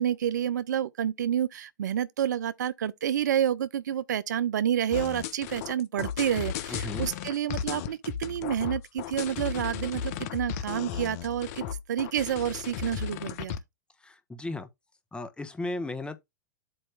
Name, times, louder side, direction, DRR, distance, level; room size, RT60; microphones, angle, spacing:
voice 1, 0.0-13.5, right 10 dB, 70° right, 0.6 m, -29 dB
sound 1, 4.9-13.6, left 8 dB, 55° left, 1.1 m, -35 dB
voice 2, 6.7-7.1 14.0-14.7 15.1-16.2, left 2 dB, 10° left, 1.3 m, -35 dB
8.0 x 3.1 x 6.0 m
hypercardioid pair, 100°, 10 cm